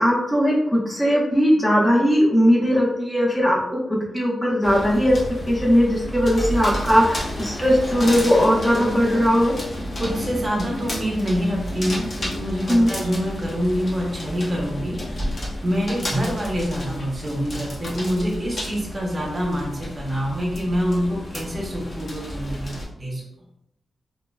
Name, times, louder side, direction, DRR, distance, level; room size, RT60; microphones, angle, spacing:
voice 1, 0.0-5.2 5.5-9.5 12.7-12.9, equal, 5° left, -5 dB, 1.1 m, -19 dB
sound 1, 4.6-22.9, equal, 45° left, 1.0 m, -31 dB
voice 2, 10.0-23.5, equal, 25° right, -1 dB, 1.0 m, -26 dB
3.7 x 2.4 x 2.3 m, 0.80 s
cardioid pair, 95°, 0 cm